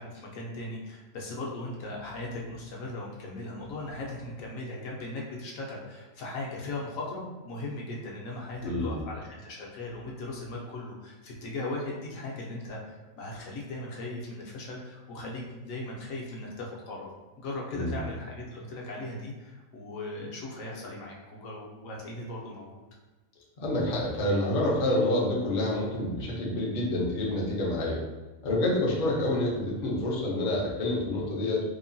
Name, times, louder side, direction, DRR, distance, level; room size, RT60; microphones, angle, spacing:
voice 1, 0.0-17.1 17.4-22.8, left 2 dB, 70° left, -2 dB, 1.0 m, -38 dB
voice 2, 8.6-9.0 17.7-18.0 23.6-28.0 28.4-31.6, left 1 dB, 55° left, -4 dB, 0.5 m, -28 dB
2.9 x 2.1 x 2.6 m, 1.2 s
omnidirectional pair, 1.5 m